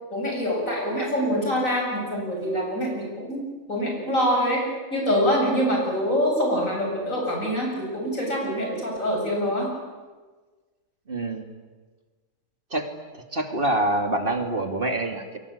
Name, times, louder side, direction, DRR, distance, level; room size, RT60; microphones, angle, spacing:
voice 1, 0.1-4.6 4.9-9.7, equal, 85° left, 0 dB, 8.3 m, -25 dB
voice 2, 11.1-11.5 12.7-12.9 13.3-15.4, right 1 dB, 45° right, 5 dB, 2.7 m, -26 dB
29.0 x 22.5 x 8.7 m, 1.3 s
omnidirectional pair, 1.4 m